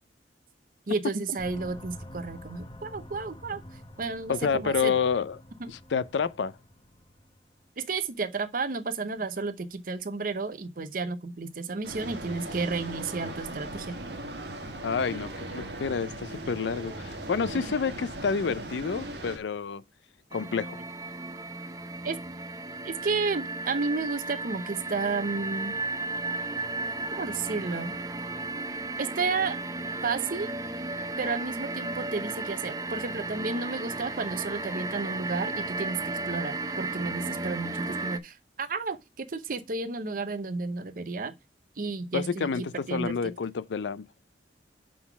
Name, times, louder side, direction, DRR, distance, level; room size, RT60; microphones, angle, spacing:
voice 1, 0.9-3.6 4.0-5.0 5.6-5.7 7.8-14.0 17.5-17.6 18.5-18.7 22.0-22.2 22.8-25.8 27.2-28.0 29.0-29.6 30.0-30.5 31.2-41.3 41.8-43.3, right 4 dB, 50° right, 0.7 m, -32 dB
sound 1, 1.4-7.7, left 1 dB, 25° left, 0.8 m, -47 dB
voice 2, 4.3-5.4 5.7-6.5 14.8-19.8 20.3-20.8 42.1-44.0, left 5 dB, 90° left, 0.5 m, -29 dB
sound 2, 11.8-19.4, right 1 dB, 75° right, 1.4 m, -38 dB
sound 3, 20.3-38.2, right 3 dB, 20° right, 0.5 m, -34 dB
6.2 x 3.9 x 5.8 m
head